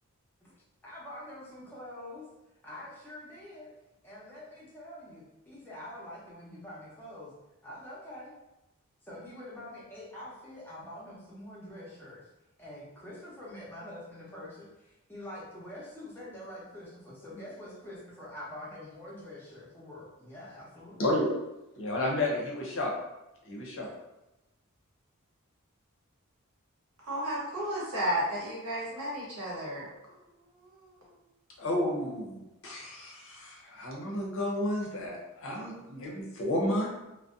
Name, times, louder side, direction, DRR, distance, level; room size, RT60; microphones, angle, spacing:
voice 1, 0.8-2.3 2.6-3.7 4.0-7.3 7.6-8.4 9.0-12.3 12.6-21.0, left 1 dB, 10° left, -7 dB, 0.7 m, -45 dB
voice 2, 21.0-21.3 21.8-23.0 23.4-23.9 31.6-36.9, left 1 dB, 60° left, -2 dB, 0.7 m, -31 dB
voice 3, 27.1-29.1 29.4-29.9, equal, 85° right, -5 dB, 0.9 m, -32 dB
2.6 x 2.1 x 2.3 m, 0.95 s
head